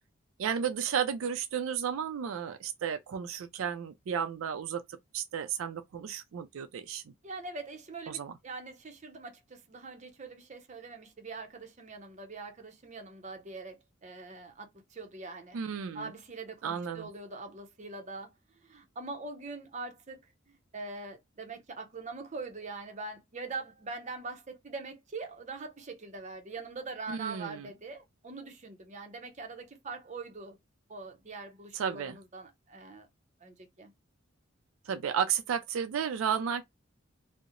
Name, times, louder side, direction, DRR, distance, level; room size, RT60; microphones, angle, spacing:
voice 1, 0.4-7.0 8.1-8.3 15.5-16.1 16.6-17.1 27.1-27.7 31.7-32.2 34.9-36.6, right 7 dB, 85° right, 0.4 m, -33 dB
voice 2, 7.2-15.6 15.9-18.3 18.6-20.2 20.7-30.6 30.9-33.1 33.4-33.9, right 3 dB, 35° right, 0.6 m, -43 dB
2.8 x 2.0 x 2.4 m
head